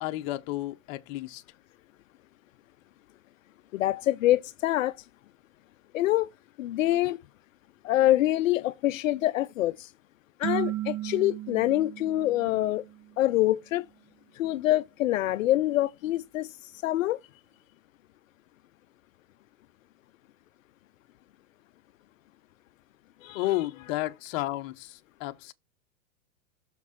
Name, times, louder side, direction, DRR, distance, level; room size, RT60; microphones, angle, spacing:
voice 1, 0.0-1.4 23.3-25.5, left 16 dB, 45° left, 1.0 m, -32 dB
voice 2, 3.7-5.0 5.9-6.3 6.6-7.2 7.8-9.9 10.4-12.8 13.2-13.8 14.3-17.2 23.2-23.5, left 14 dB, 80° left, 0.5 m, -25 dB
sound 1, 10.4-13.1, right 14 dB, 85° right, 1.7 m, -35 dB
6.6 x 5.8 x 4.3 m
hypercardioid pair, 120°, 39 cm